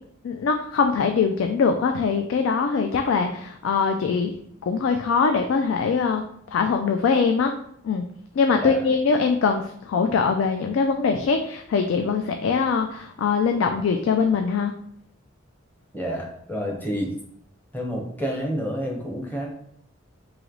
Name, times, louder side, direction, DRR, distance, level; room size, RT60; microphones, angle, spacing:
voice 1, 0.2-4.3 4.7-6.2 6.5-7.5 7.8-8.1 8.4-14.7, left 5 dB, 85° left, 5 dB, 0.3 m, -22 dB
voice 2, 15.9-17.1 17.7-19.5, equal, 10° left, -1 dB, 0.8 m, -29 dB
3.1 x 2.9 x 3.8 m, 0.68 s
head